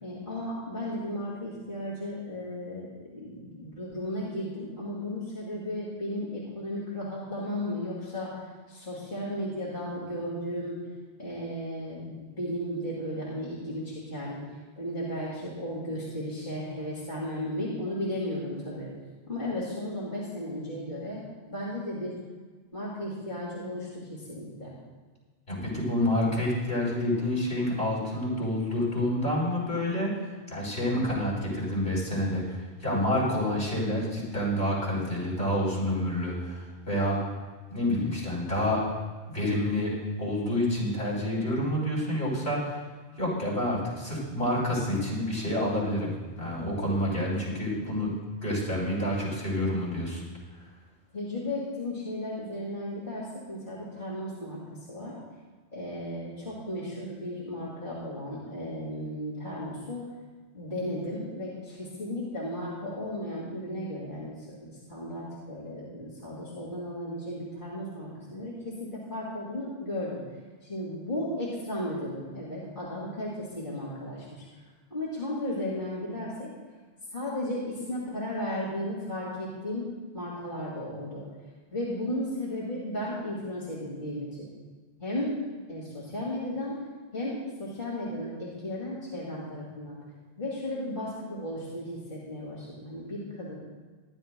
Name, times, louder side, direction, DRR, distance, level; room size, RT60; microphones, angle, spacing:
voice 1, 0.0-10.8 11.2-14.4 14.8-18.9 19.3-21.2 21.5-22.2 22.7-24.7 51.1-54.6 54.9-55.2 55.7-60.0 60.5-70.2 70.6-74.3 74.9-76.5 77.1-79.9 80.1-81.2 81.7-84.5 85.0-85.3 85.7-86.8 87.1-90.0 90.4-93.5, left 1 dB, 50° left, -6 dB, 2.6 m, -35 dB
voice 2, 25.5-37.2 37.7-38.8 39.3-39.9 40.2-42.8 43.2-46.1 46.4-48.1 48.4-50.2, left 1 dB, 65° left, -5 dB, 4.5 m, -28 dB
23.0 x 11.0 x 2.2 m, 1.4 s
omnidirectional pair, 1.1 m